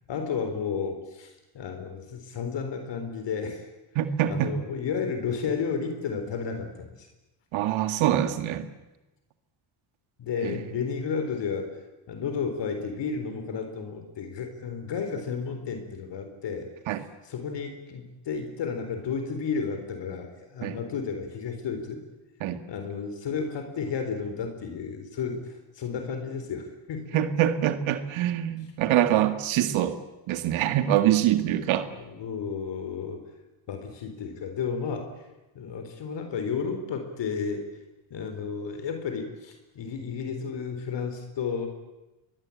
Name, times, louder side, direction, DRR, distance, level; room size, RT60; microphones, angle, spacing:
voice 1, 0.1-3.7 4.3-7.1 10.2-11.7 12.1-16.7 17.2-22.0 22.7-27.2 31.9-33.2 33.7-35.1 35.5-37.6 38.1-41.7, left 6 dB, 65° left, 6 dB, 4.1 m, -32 dB
voice 2, 4.0-4.5 7.5-8.7 10.4-10.6 16.9-17.0 20.6-20.8 22.4-22.6 27.1-30.0 30.3-31.9, right 12 dB, 80° right, 9 dB, 1.9 m, -24 dB
25.5 x 21.0 x 8.6 m, 1.0 s
cardioid pair, 105°, 47 cm